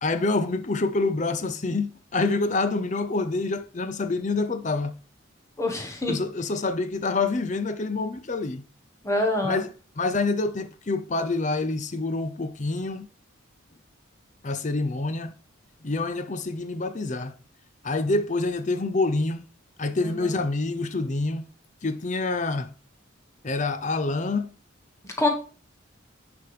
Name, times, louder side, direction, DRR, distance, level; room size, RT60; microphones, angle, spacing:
voice 1, 0.0-4.9 6.1-8.6 9.4-9.7 10.0-13.1 14.4-15.3 15.8-17.3 17.8-19.4 19.8-21.5 21.8-22.7 23.4-24.5, left 3 dB, 35° left, 0.6 m, -27 dB
voice 2, 5.6-6.2 9.0-9.6 20.0-20.4 25.2-25.3, left 2 dB, 15° left, 1.3 m, -25 dB
10.5 x 3.5 x 4.9 m
head